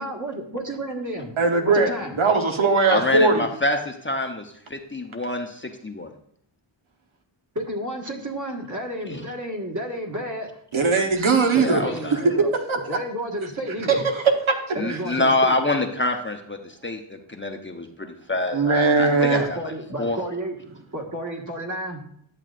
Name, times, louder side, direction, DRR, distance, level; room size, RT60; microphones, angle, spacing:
voice 1, 0.0-1.3 1.6-2.2 7.5-10.5 11.5-12.5 12.9-14.0 14.7-15.6 19.2-20.6 20.9-22.0, right 1 dB, 35° right, 0 dB, 1.7 m, -31 dB
voice 2, 1.4-1.9 2.2-3.4 10.7-11.8 12.7-12.8 14.1-14.2 18.5-19.4, right 4 dB, 70° right, 3 dB, 1.1 m, -19 dB
voice 3, 2.9-6.1 9.1-9.2 11.6-12.3 14.8-19.6 20.0-20.2, left 2 dB, 25° left, 4 dB, 0.8 m, -26 dB
10.5 x 7.4 x 2.5 m, 0.69 s
wide cardioid pair, 80°, 50 cm